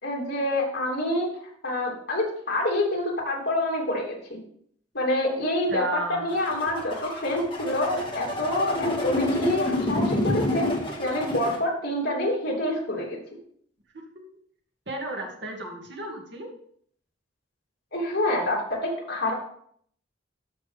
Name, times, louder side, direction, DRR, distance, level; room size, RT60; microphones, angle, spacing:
voice 1, 0.0-1.3 1.6-4.4 4.9-10.7 11.0-13.2 17.9-19.3, left 1 dB, 55° left, -2 dB, 3.3 m, -27 dB
voice 2, 5.7-6.5 14.9-16.5, right 2 dB, 65° right, 0 dB, 2.3 m, -34 dB
sound 1, 6.3-11.6, left 1 dB, 25° left, 1.8 m, -28 dB
13.5 x 6.0 x 3.5 m, 0.63 s
head